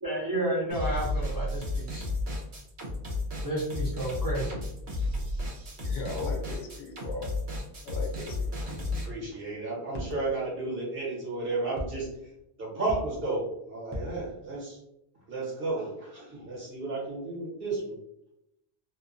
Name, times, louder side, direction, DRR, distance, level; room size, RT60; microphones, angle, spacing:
voice 1, 0.0-2.1 3.4-4.5, right 1 dB, 30° right, -5 dB, 0.4 m, -31 dB
sound 1, 0.7-9.1, left 2 dB, 80° right, 1.1 m, -32 dB
voice 2, 5.8-7.3 7.8-8.5, left 3 dB, 65° left, 2 dB, 0.8 m, -37 dB
voice 3, 9.0-12.1 12.6-14.8 15.3-17.9, right 3 dB, 60° right, -4 dB, 1.2 m, -33 dB
sound 2, 9.9-10.5 11.8-12.2 12.9-13.4 13.9-14.5, left 1 dB, 35° left, 0.4 m, -39 dB
2.7 x 2.1 x 2.4 m, 0.82 s
omnidirectional pair, 1.1 m